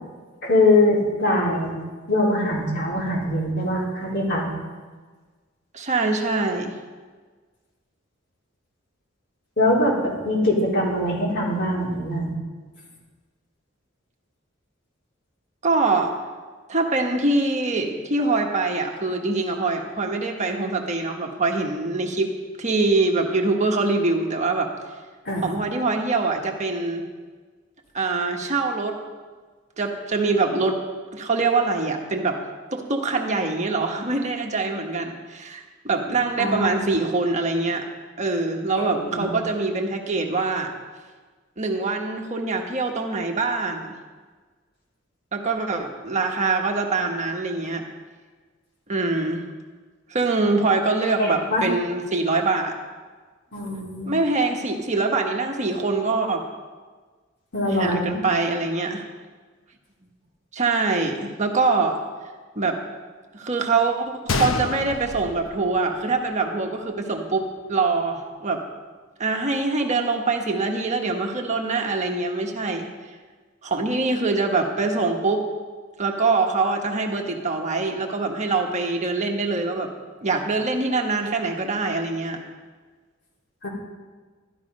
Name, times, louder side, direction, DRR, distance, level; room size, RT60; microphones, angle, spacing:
voice 1, 0.4-1.8 2.1-4.4 9.6-12.4 25.3-25.5 36.4-36.9 38.8-39.3 51.2-51.7 53.5-54.2 57.5-58.2 83.6-83.7, left 1 dB, 60° left, -4 dB, 3.7 m, -22 dB
voice 2, 5.7-6.8 15.6-16.1 16.7-22.3 22.6-24.7 25.4-27.1 27.9-29.0 29.8-30.8 31.1-32.4 32.7-37.8 38.2-40.7 41.6-43.9 45.3-47.8 48.9-49.4 50.1-52.8 54.1-56.4 57.7-59.0 60.5-62.0 62.6-62.8 63.3-68.6 69.2-72.9 73.6-75.5 76.0-79.9 80.2-82.4, right 3 dB, 35° right, 2 dB, 1.3 m, -24 dB
Gunshot gunfire, 64.3-66.3 66.6-66.7 67.4-67.6, left 3 dB, 80° left, 0.9 m, -28 dB
13.0 x 12.0 x 5.3 m, 1.4 s
head